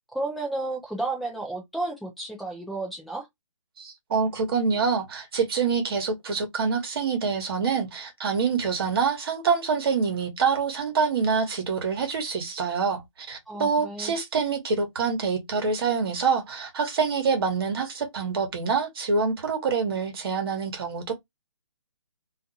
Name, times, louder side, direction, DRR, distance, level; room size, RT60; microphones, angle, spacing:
voice 1, 0.1-3.3 13.5-14.1, right 2 dB, ahead, 0.3 m, -32 dB
voice 2, 3.8-21.1, right 5 dB, 50° right, 1.1 m, -26 dB
2.5 x 2.4 x 2.7 m
hypercardioid pair, 150°, 16 cm